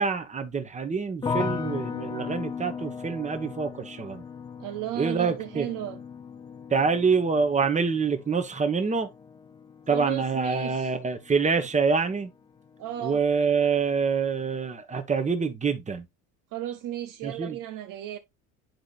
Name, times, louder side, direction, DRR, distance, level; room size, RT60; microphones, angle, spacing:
voice 1, 0.0-4.2 5.0-5.7 6.7-9.1 9.9-12.3 13.0-16.0 17.2-17.6, right 5 dB, 15° right, 1.1 m, -26 dB
sound 1, 1.2-12.3 12.6-13.3, left 6 dB, 10° left, 0.3 m, -37 dB
voice 2, 4.6-6.0 9.9-10.9 12.8-13.2 16.5-18.2, right 12 dB, 50° right, 0.7 m, -34 dB
10.5 x 3.8 x 2.4 m
supercardioid pair, 90°, 42 cm